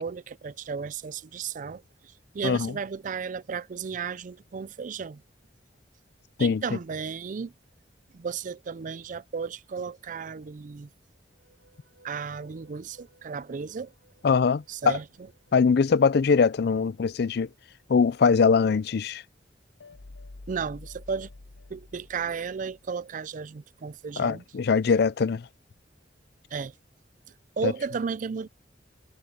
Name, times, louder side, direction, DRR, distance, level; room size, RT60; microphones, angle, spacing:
voice 1, 0.0-5.2 6.4-7.5 8.1-10.9 12.0-13.9 14.7-15.1 20.5-21.3 21.7-24.4 26.5-26.7 27.6-28.5, right 5 dB, 45° right, 0.4 m, -34 dB
sound 1, 11.2-18.5, right 2 dB, 80° right, 5.7 m, -64 dB
voice 2, 14.2-15.0 15.5-17.5 17.9-19.2 24.2-25.5 27.6-27.7, left 5 dB, 60° left, 0.4 m, -22 dB
sound 2, 19.8-23.0, left 2 dB, 80° left, 0.8 m, -48 dB
head